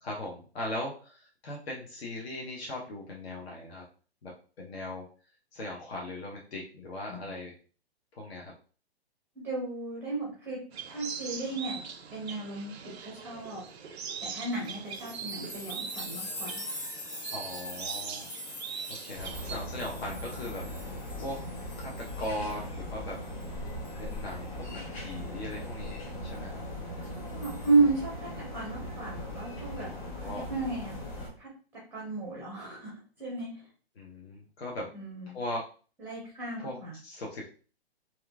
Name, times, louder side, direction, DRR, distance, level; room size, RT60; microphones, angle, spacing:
voice 1, 0.0-3.8 4.2-5.1 5.5-7.5 8.1-8.5 17.3-18.3 18.9-20.6 21.2-21.4 21.8-23.2 24.0-26.6 29.9-30.5 34.0-34.9 35.3-35.7 36.6-37.5, left 1 dB, 75° left, -2 dB, 0.8 m, -39 dB
voice 2, 9.4-11.8 12.1-13.7 14.2-16.7 27.0-29.9 30.2-31.0 31.4-33.5 34.9-35.3 36.0-37.0, right 3 dB, 5° right, -4 dB, 0.4 m, -33 dB
sound 1, 10.7-19.6, right 6 dB, 85° right, 0.5 m, -41 dB
sound 2, 14.5-22.9 23.2-24.3 25.5-25.6 27.0-27.8, left 1 dB, 55° left, 1.2 m, -43 dB
sound 3, 19.1-31.3, left 1 dB, 35° left, 1.0 m, -39 dB
2.9 x 2.4 x 2.3 m, 0.39 s
hypercardioid pair, 130°, 31 cm